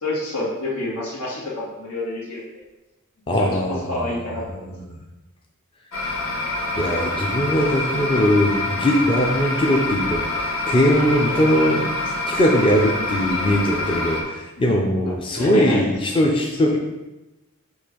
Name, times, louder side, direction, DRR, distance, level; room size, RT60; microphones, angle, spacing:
voice 1, 0.0-2.6 3.3-4.7 11.2-11.4 15.4-15.9, left 2 dB, 85° left, -5 dB, 2.0 m, -28 dB
voice 2, 3.3-4.1 4.5-5.0 6.8-12.0 12.3-16.8, equal, 25° left, 0 dB, 0.6 m, -20 dB
sound 1, 5.9-14.2, left 2 dB, 60° left, 1.3 m, -26 dB
6.3 x 3.0 x 5.1 m, 1.0 s
head